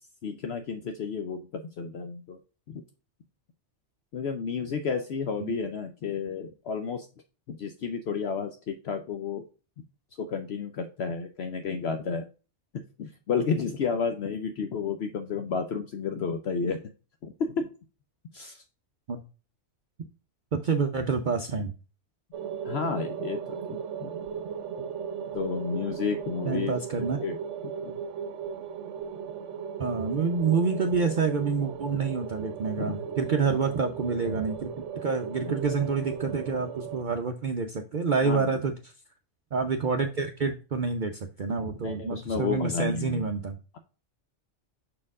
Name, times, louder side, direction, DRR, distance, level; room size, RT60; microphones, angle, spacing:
voice 1, 0.2-2.4 2.7-2.8 4.1-7.1 7.5-9.5 10.2-12.2 12.7-16.8 17.2-17.7 18.3-18.6 22.6-24.1 25.3-27.4 27.6-28.0 32.8-32.9 35.5-35.6 38.2-38.6 41.8-43.3, left 5 dB, 65° left, 6 dB, 0.9 m, -31 dB
voice 2, 20.5-21.7 26.4-27.2 29.8-34.7 35.0-38.7 39.5-43.6, right 5 dB, 50° right, 5 dB, 0.7 m, -28 dB
sound 1, 22.3-37.0, right 7 dB, 80° right, 0.9 m, -37 dB
6.6 x 4.4 x 3.5 m, 0.34 s
omnidirectional pair, 1.2 m